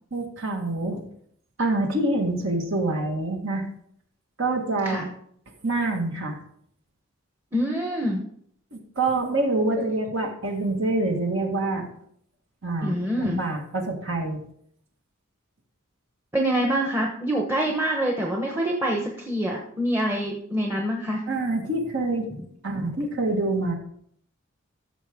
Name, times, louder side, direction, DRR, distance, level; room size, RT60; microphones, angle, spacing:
voice 1, 0.1-1.0 1.6-3.7 4.4-5.1 5.6-6.4 8.7-11.9 12.6-14.4 21.3-22.3 22.6-23.7, right 2 dB, 60° right, 2 dB, 1.7 m, -26 dB
voice 2, 7.5-8.2 12.8-13.4 16.3-21.2, right 1 dB, 10° right, -1 dB, 1.0 m, -25 dB
14.0 x 6.4 x 3.6 m, 0.67 s
head